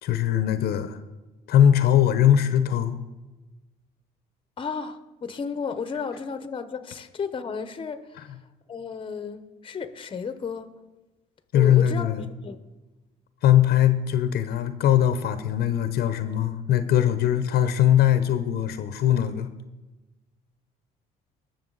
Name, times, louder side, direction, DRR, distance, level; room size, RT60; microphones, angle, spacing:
voice 1, 0.0-1.0 1.5-3.0 11.5-12.3 13.4-19.5, left 10 dB, 70° left, 0.8 m, -21 dB
voice 2, 4.6-8.3 8.7-10.7 11.5-12.6, left 5 dB, 30° left, 0.9 m, -33 dB
20.0 x 6.8 x 4.0 m
cardioid pair, 110°, 17 cm